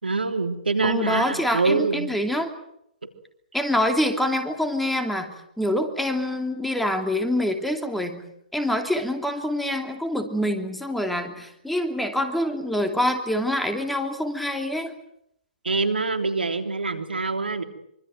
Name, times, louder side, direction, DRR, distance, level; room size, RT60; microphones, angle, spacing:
voice 1, 0.0-2.1 15.6-17.6, right 3 dB, 85° right, 7 dB, 3.3 m, -25 dB
voice 2, 0.8-2.5 3.5-8.2 8.5-14.9, left 1 dB, ahead, 5 dB, 2.9 m, -25 dB
25.0 x 25.0 x 7.9 m, 0.75 s
hypercardioid pair, 130°, 5 cm